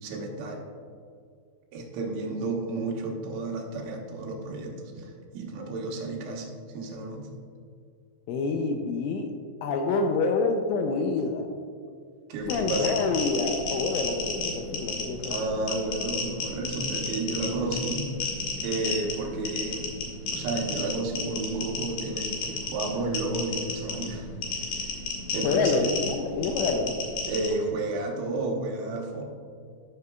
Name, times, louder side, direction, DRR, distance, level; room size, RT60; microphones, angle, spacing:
voice 1, 0.0-0.6 1.7-7.3 12.3-13.0 15.3-18.1 18.6-19.9 20.3-24.9 25.3-25.9 27.3-29.2, right 2 dB, 80° right, 0 dB, 3.6 m, -32 dB
voice 2, 8.3-9.3 9.6-11.5 12.5-15.4 25.4-27.0, left 4 dB, 85° left, 4 dB, 2.8 m, -27 dB
sound 1, 12.4-27.5, left 4 dB, 65° left, 2.1 m, -33 dB
15.0 x 6.7 x 2.3 m, 2.2 s
omnidirectional pair, 5.9 m